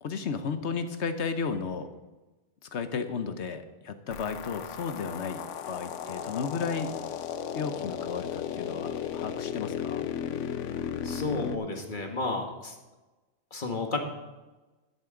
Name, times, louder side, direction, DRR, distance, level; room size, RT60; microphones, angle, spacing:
voice 1, 0.0-1.9 2.6-6.9 7.5-10.0, left 5 dB, 70° left, 9 dB, 1.2 m, -34 dB
sound 1, 4.1-11.6, left 9 dB, 90° left, 1.0 m, -35 dB
voice 2, 11.0-12.8 13.5-14.0, left 3 dB, 45° left, 3 dB, 1.6 m, -32 dB
13.0 x 10.5 x 3.8 m, 1.2 s
omnidirectional pair, 1.2 m